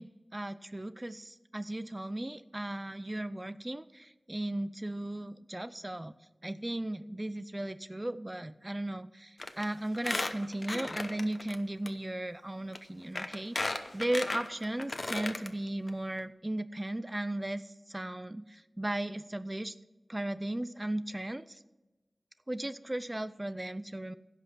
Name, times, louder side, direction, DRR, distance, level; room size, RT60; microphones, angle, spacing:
voice 1, 0.0-6.1 6.4-19.7 20.1-21.6 22.5-24.1, right 1 dB, 20° right, 14 dB, 0.5 m, -36 dB
Squeak, 9.4-9.6 9.9-11.6 11.9-12.0 12.7-12.8 13.2-15.5 15.9-16.0 16.2-16.3, left 2 dB, 55° left, 0.9 m, -35 dB
16.0 x 5.7 x 6.0 m, 1.1 s
wide cardioid pair, 70°, 0 cm